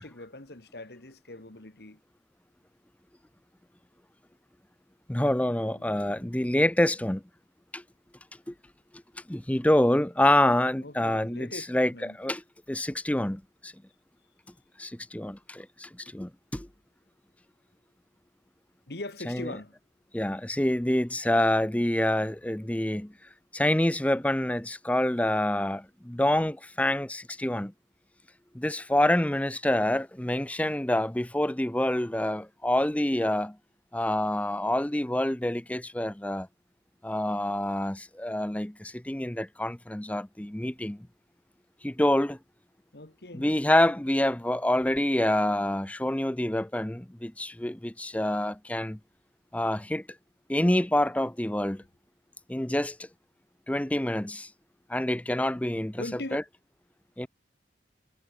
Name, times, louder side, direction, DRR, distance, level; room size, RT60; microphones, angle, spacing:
voice 1, 0.0-2.0 10.8-12.2 18.9-19.7 42.9-43.5 56.0-56.4, left 2 dB, 60° left, 1.8 m, -41 dB
voice 2, 5.1-7.2 7.7-7.8 8.5-8.6 9.3-12.4 12.7-13.7 14.8-16.7 19.3-19.5 20.1-23.1 23.5-27.7 28.5-33.6 33.9-36.5 37.0-41.1 41.8-42.4 43.3-49.0 49.5-50.0 50.5-51.8 52.5-53.1 53.7-54.5 54.9-56.0 56.3-56.4 57.2-57.3, left 1 dB, 10° left, 0.5 m, -27 dB
head